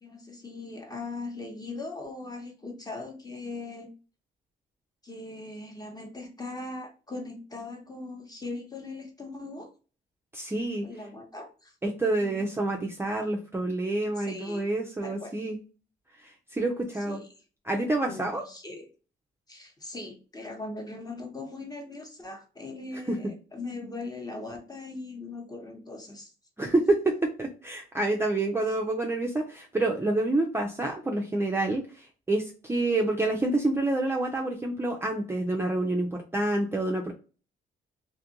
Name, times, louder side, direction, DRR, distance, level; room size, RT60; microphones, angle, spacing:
voice 1, 0.0-3.9 5.0-9.7 10.8-11.7 12.2-12.5 14.2-14.7 15.0-15.3 17.1-17.4 18.0-18.9 19.5-26.3 28.7-28.8, left 3 dB, 20° left, 3 dB, 0.9 m, -40 dB
voice 2, 10.3-10.8 11.8-15.6 16.2-17.2 17.6-18.4 26.6-37.1, right 2 dB, 10° right, 0 dB, 0.4 m, -28 dB
2.6 x 2.4 x 2.8 m, 0.36 s
cardioid pair, 90°, 20 cm